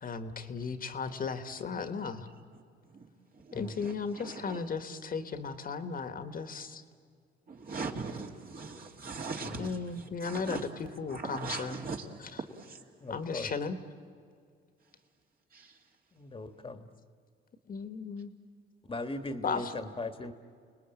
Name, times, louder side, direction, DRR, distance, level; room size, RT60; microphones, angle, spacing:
voice 1, 0.0-2.3 3.5-6.8 9.6-11.8 12.2-12.4 13.1-13.8 17.7-18.3 19.4-19.7, left 5 dB, 45° left, 9 dB, 1.5 m, -36 dB
voice 2, 3.5-4.6 7.5-9.7 10.2-10.7 11.1-12.1 12.7-12.8 15.5-15.7, right 4 dB, 50° right, 1 dB, 2.9 m, -40 dB
voice 3, 13.0-13.5 16.2-16.9 18.9-20.3, left 2 dB, 25° left, 8 dB, 1.5 m, -38 dB
30.0 x 20.0 x 9.0 m, 2.2 s
cardioid pair, 90°, 20 cm